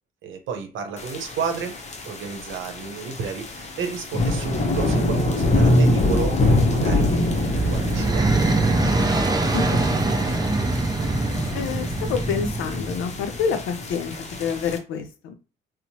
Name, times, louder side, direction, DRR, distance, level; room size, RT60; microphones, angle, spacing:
voice 1, 0.2-1.8 2.0-8.5, right 6 dB, 75° right, 5 dB, 0.8 m, -32 dB
sound 1, 1.0-14.8, left 1 dB, 35° left, 0.7 m, -25 dB
sound 2, 7.1-13.1, right 2 dB, 20° right, 0.4 m, -23 dB
voice 2, 9.5-10.4 11.5-14.1 14.4-15.3, left 6 dB, 80° left, 7 dB, 0.5 m, -28 dB
2.9 x 2.0 x 2.7 m, 0.33 s
cardioid pair, 90°, 20 cm